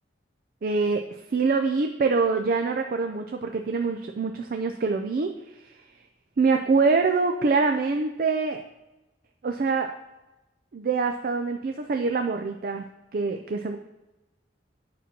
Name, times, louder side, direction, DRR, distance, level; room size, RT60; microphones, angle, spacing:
voice 1, 0.6-1.0 1.3-5.7 6.4-8.6 9.4-9.9 10.7-12.9 13.1-13.8, right 4 dB, 50° right, 5 dB, 0.4 m, -25 dB
8.3 x 6.0 x 2.8 m, 1.0 s
head